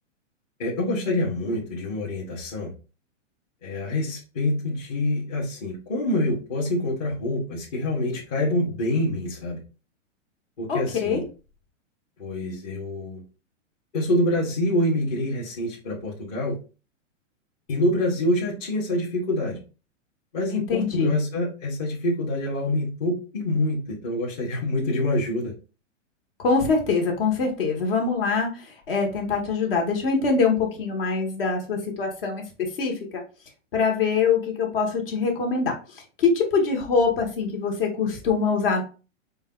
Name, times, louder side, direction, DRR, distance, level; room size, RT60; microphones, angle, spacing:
voice 1, 0.6-2.7 3.6-9.6 10.6-11.2 12.2-13.2 13.9-16.6 17.7-19.6 20.3-25.5, left 1 dB, 30° left, -5 dB, 1.0 m, -26 dB
voice 2, 10.7-11.2 20.5-21.1 26.4-28.5 28.9-32.4 32.8-32.9 33.7-35.7 36.2-38.8, left 4 dB, 45° left, 2 dB, 1.3 m, -23 dB
5.0 x 2.3 x 3.6 m, 0.34 s
hypercardioid pair, 170°, 38 cm